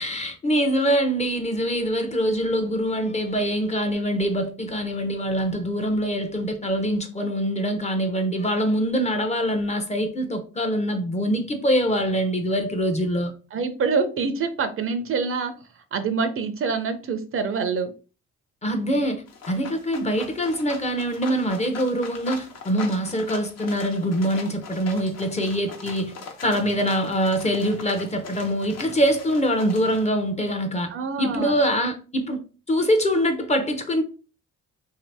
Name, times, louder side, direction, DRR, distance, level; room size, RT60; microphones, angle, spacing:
voice 1, 0.0-13.3 18.6-26.1 26.4-30.9 31.2-34.0, equal, 20° left, 0.6 m, -24 dB
voice 2, 13.5-15.5 15.9-17.9 30.9-31.6, right 5 dB, 45° right, 0.5 m, -26 dB
sound 1, 19.3-30.1, left 5 dB, 60° left, 0.9 m, -41 dB
2.8 x 2.5 x 3.3 m
cardioid pair, 90°, 30 cm